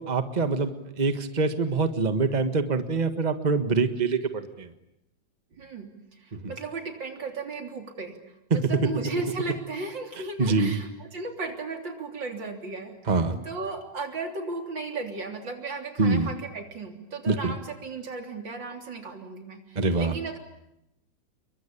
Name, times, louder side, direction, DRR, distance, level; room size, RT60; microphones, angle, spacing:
voice 1, 0.0-4.7 6.3-6.5 8.5-8.6 10.4-10.8 13.1-13.4 16.0-16.3 17.3-17.5 19.7-20.1, right 4 dB, 25° right, 8 dB, 1.6 m, -25 dB
voice 2, 5.5-5.9 6.2-8.2 8.5-13.0 13.4-20.4, right 3 dB, 90° right, 4 dB, 4.1 m, -35 dB
29.0 x 23.0 x 8.6 m, 0.86 s
omnidirectional pair, 2.0 m